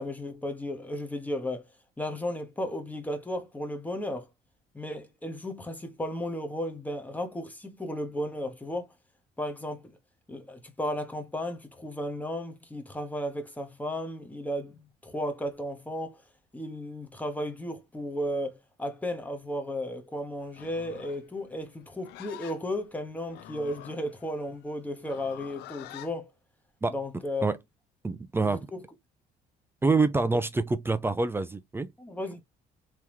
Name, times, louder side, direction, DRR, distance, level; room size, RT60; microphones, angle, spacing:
voice 1, 0.0-1.7 2.0-4.3 4.7-8.9 9.4-9.9 10.3-16.2 16.5-26.3 26.9-27.4 28.4-28.8 32.0-32.4, left 1 dB, 10° left, 1.0 m, -34 dB
Livestock farm animals working animals, 20.5-26.1, left 14 dB, 75° left, 0.5 m, -47 dB
voice 2, 28.0-28.7 29.8-31.9, right 3 dB, 15° right, 0.4 m, -26 dB
3.5 x 3.0 x 3.0 m
cardioid pair, 110°, 17 cm